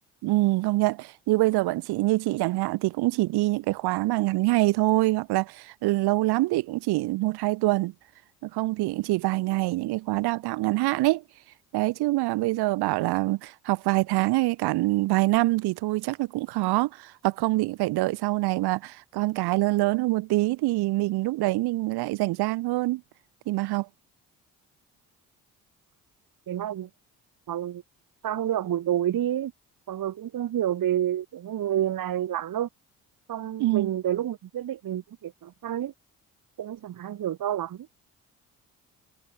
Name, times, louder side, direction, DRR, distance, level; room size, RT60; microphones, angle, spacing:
voice 1, 0.2-7.9 8.4-11.2 11.7-23.0 23.5-23.9 33.6-33.9, right 19 dB, 80° right, 2.2 m, -25 dB
voice 2, 26.5-26.9 27.5-27.8 28.2-29.5 29.9-32.7 33.3-35.9 36.6-37.9, right 11 dB, 60° right, 1.7 m, -29 dB
hypercardioid pair, 55°, 38 cm